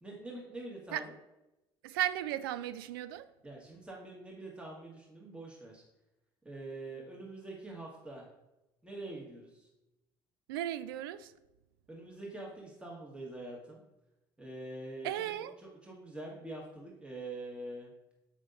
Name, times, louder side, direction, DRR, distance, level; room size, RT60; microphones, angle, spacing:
voice 1, 0.0-1.1 3.4-5.8 6.4-8.3 8.8-9.7 11.9-13.8 14.4-17.9, right 2 dB, 10° right, 1.6 m, -45 dB
voice 2, 1.8-3.3 10.5-11.3 15.0-15.5, right 12 dB, 70° right, 0.4 m, -35 dB
8.1 x 6.2 x 2.6 m
figure-of-eight pair, 55°, 12 cm